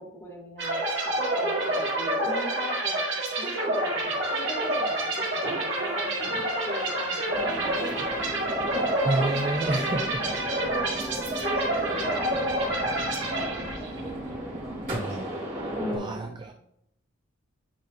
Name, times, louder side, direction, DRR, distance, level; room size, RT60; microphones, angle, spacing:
voice 1, 0.0-3.1 3.4-6.3 6.6-8.9 9.4-9.9 10.2-10.4 10.7-15.2 15.8-16.4, equal, 15° left, -4 dB, 2.1 m, -41 dB
sound 1, 0.6-14.1, right 1 dB, 60° right, 1.9 m, -28 dB
sound 2, 3.9-10.5, equal, 45° left, 1.9 m, -46 dB
sound 3, 7.3-16.0, equal, 40° right, 2.4 m, -35 dB
voice 2, 9.0-10.2 14.9-15.3 15.9-16.5, right 2 dB, 20° right, 4 dB, 0.3 m, -29 dB
9.8 x 4.2 x 2.5 m, 0.75 s
head